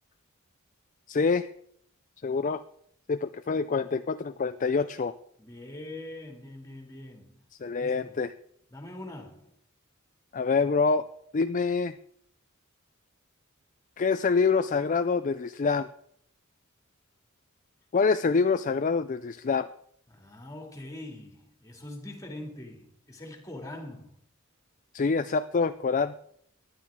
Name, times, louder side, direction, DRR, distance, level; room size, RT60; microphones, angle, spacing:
voice 1, 1.1-1.5 2.2-2.6 3.1-5.2 7.6-8.3 10.3-11.1 11.3-11.9 14.0-15.9 17.9-19.7 24.9-26.1, left 4 dB, 40° left, 0.4 m, -26 dB
voice 2, 5.4-7.5 7.8-8.2 8.7-9.5 20.1-24.2, left 1 dB, 15° left, 2.6 m, -43 dB
18.5 x 11.5 x 3.7 m
head